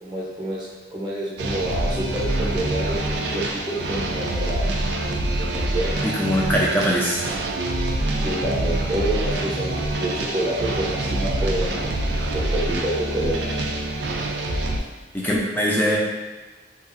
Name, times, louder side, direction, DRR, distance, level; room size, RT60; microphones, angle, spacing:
voice 1, 0.0-4.7 5.3-6.1 8.2-11.9 12.3-13.6, right 1 dB, 25° right, -7 dB, 0.7 m, -28 dB
sound 1, 1.4-14.8, right 1 dB, 65° right, 0.3 m, -25 dB
voice 2, 6.0-7.2 15.1-16.0, equal, 10° left, -4 dB, 0.4 m, -22 dB
2.8 x 2.5 x 2.5 m, 1.2 s
head